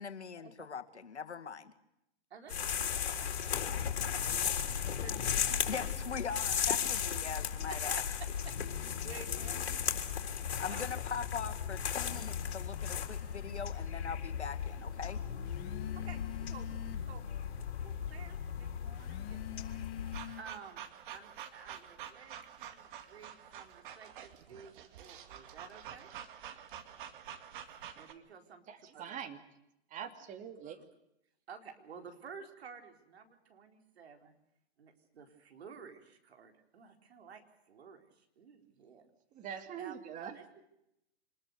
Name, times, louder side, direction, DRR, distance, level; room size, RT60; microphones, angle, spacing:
voice 1, 0.0-1.7 5.7-8.0 10.6-15.2, left 6 dB, 85° left, 8 dB, 2.2 m, -41 dB
voice 2, 2.3-5.9 6.2-6.5 8.4-8.6 9.0-11.1 15.9-16.7 17.0-17.2 17.5-26.1 28.0-29.2 30.0-30.1 30.6-30.8 31.5-34.3 34.8-39.1 39.8-40.5, right 6 dB, 65° right, 5 dB, 4.3 m, -53 dB
sound 1, 2.5-20.2, left 8 dB, 65° left, 3.9 m, -36 dB
sound 2, 4.9-6.8 7.1-7.9 8.3-20.4, left 14 dB, 30° left, 1.3 m, -51 dB
sound 3, 20.1-28.1, right 9 dB, 50° right, 2.3 m, -48 dB
voice 3, 28.7-29.4 29.9-30.8 39.3-40.4, right 8 dB, 25° right, 7 dB, 2.5 m, -44 dB
26.0 x 21.0 x 6.6 m, 0.83 s
hypercardioid pair, 130°, 33 cm